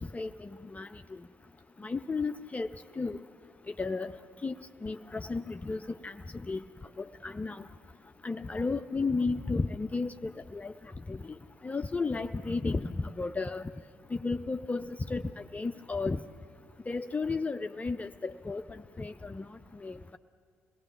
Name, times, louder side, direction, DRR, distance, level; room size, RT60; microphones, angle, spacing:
voice 1, 0.1-1.0 1.8-2.7 3.0-3.2 3.8-4.1 4.4-4.5 4.8-6.6 7.0-7.6 8.2-10.7 11.1-11.3 11.6-13.7 14.1-15.2 15.5-16.2 16.9-20.2, left 3 dB, 20° left, 8 dB, 0.5 m, -33 dB
26.5 x 18.5 x 7.0 m, 2.3 s
figure-of-eight pair, 50°, 7 cm